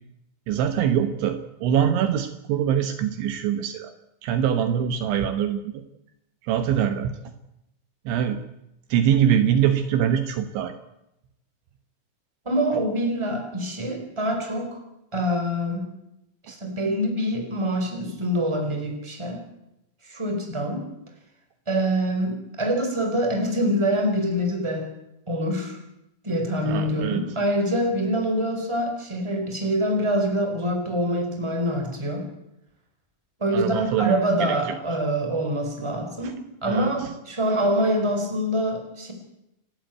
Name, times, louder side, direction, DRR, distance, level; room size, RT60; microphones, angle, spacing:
voice 1, 0.5-3.9 4.2-5.8 6.4-7.2 8.1-8.4 8.9-10.7 26.6-27.2 33.5-34.8 36.2-36.3 36.6-37.1, right 9 dB, 75° right, 8 dB, 3.3 m, -23 dB
voice 2, 12.4-14.8 15.1-15.9 16.4-19.4 20.0-20.9 21.7-24.9 25.3-25.8 26.2-32.3 33.4-39.1, equal, 5° right, 4 dB, 3.7 m, -25 dB
29.5 x 12.5 x 9.3 m, 0.86 s
omnidirectional pair, 5.8 m